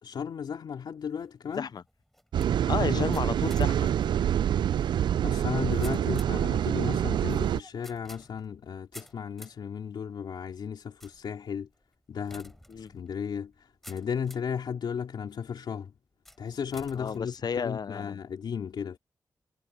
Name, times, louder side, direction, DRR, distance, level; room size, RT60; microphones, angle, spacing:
voice 1, 0.0-1.7 2.8-3.1 5.2-11.7 12.1-15.9 16.4-19.0, left 7 dB, 80° left, 3.3 m, -35 dB
sound 1, 1.0-14.6 15.2-15.6 16.2-18.1, equal, 5° left, 6.6 m, -54 dB
sound 2, 2.3-7.6, right 10 dB, 90° right, 0.4 m, -26 dB
voice 2, 2.7-3.9 12.7-12.9 17.0-18.2, left 6 dB, 65° left, 0.7 m, -32 dB
cardioid pair, 50°, 8 cm